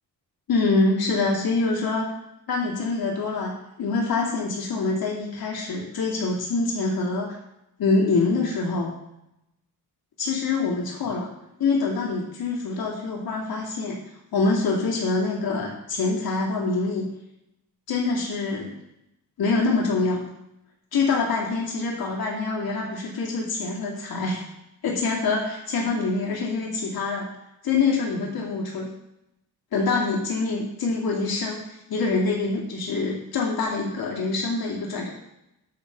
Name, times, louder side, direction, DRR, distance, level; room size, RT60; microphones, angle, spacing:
voice 1, 0.5-2.1 2.5-7.4 7.8-8.9 10.2-11.3 11.6-14.0 14.3-17.1 17.9-18.7 19.4-20.2 20.9-24.4 24.8-27.3 27.6-28.9 29.7-31.6 31.9-35.1, left 3 dB, 70° left, -3 dB, 2.5 m, -25 dB
9.8 x 5.3 x 6.8 m, 0.86 s
wide cardioid pair, 170°, 37 cm